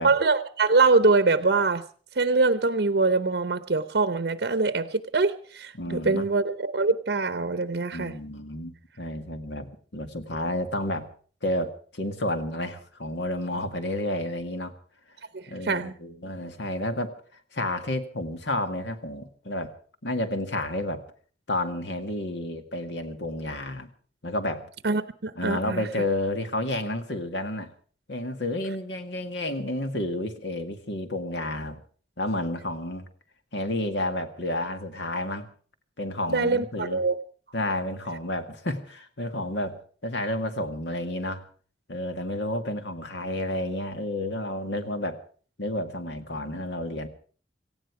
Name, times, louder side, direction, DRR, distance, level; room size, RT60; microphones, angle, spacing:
voice 1, 0.0-1.8 2.2-8.1 15.3-15.9 24.8-25.9 36.3-37.1, right 3 dB, 65° right, 12 dB, 0.7 m, -23 dB
voice 2, 5.7-6.2 7.9-11.1 11.4-14.7 15.5-19.7 20.0-21.0 21.5-23.9 24.2-24.7 25.4-27.7 28.1-31.8 32.2-33.1 33.5-35.5 36.0-37.0 37.5-41.4 41.9-45.2 45.6-47.1, left 1 dB, 80° left, 7 dB, 2.0 m, -31 dB
18.0 x 16.0 x 4.8 m, 0.43 s
head